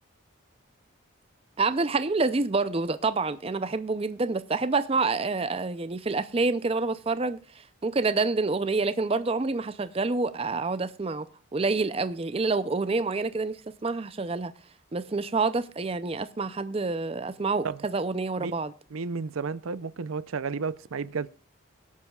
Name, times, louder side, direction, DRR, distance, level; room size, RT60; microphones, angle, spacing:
voice 1, 1.6-7.4 7.8-11.3 11.5-14.5 14.9-18.7, right 3 dB, 30° right, 0.5 m, -27 dB
voice 2, 18.9-21.3, right 5 dB, 85° right, 0.6 m, -32 dB
23.0 x 8.3 x 2.3 m
head